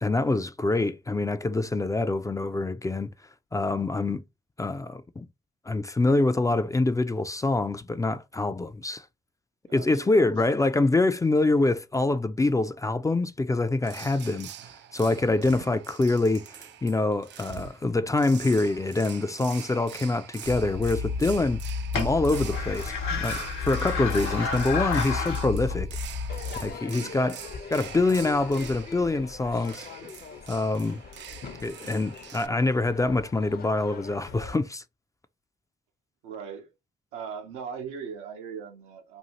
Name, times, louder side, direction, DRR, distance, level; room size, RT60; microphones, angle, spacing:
voice 1, 0.0-3.1 3.5-4.2 4.6-5.3 5.7-9.0 9.7-14.5 14.9-21.6 21.9-25.9 26.6-27.4 27.7-29.9 30.5-31.0 31.6-34.8, left 2 dB, 15° left, 0.3 m, -25 dB
voice 2, 9.7-10.4 26.8-27.3 36.2-36.7 37.1-39.2, right 6 dB, 85° right, 0.7 m, -39 dB
sound 1, 13.8-32.5, right 10 dB, 60° right, 0.4 m, -44 dB
sound 2, 20.5-26.7, left 4 dB, 75° left, 1.0 m, -30 dB
Crowd / Fireworks, 26.3-34.5, left 6 dB, 50° left, 0.7 m, -42 dB
2.7 x 2.4 x 2.8 m
hypercardioid pair, 50°, 21 cm